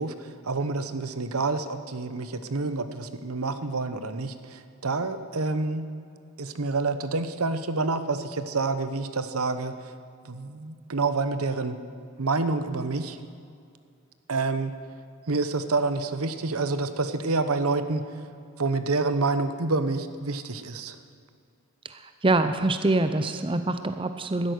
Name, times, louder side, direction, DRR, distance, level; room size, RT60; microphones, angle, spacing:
voice 1, 0.0-5.8 6.4-9.9 10.2-11.8 12.2-13.2 14.3-14.7 15.3-18.1 18.6-21.0, right 3 dB, 75° right, 10 dB, 1.0 m, -28 dB
voice 2, 21.8-24.5, right 2 dB, 25° right, 9 dB, 0.6 m, -25 dB
13.0 x 11.0 x 9.5 m, 2.3 s
head